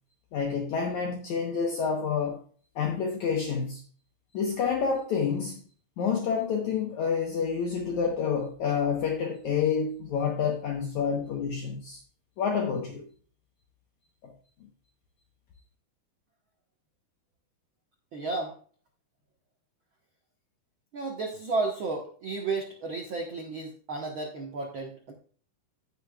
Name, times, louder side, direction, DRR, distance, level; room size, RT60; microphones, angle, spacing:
voice 1, 0.3-2.4 2.8-3.8 4.3-5.6 6.0-12.0 12.4-13.0 14.2-14.3, left 6 dB, 65° left, 1 dB, 2.0 m, -28 dB
voice 2, 18.1-18.6 20.9-25.1, right 3 dB, 75° right, 0 dB, 1.1 m, -32 dB
15.5 x 6.9 x 2.3 m, 0.43 s
omnidirectional pair, 4.3 m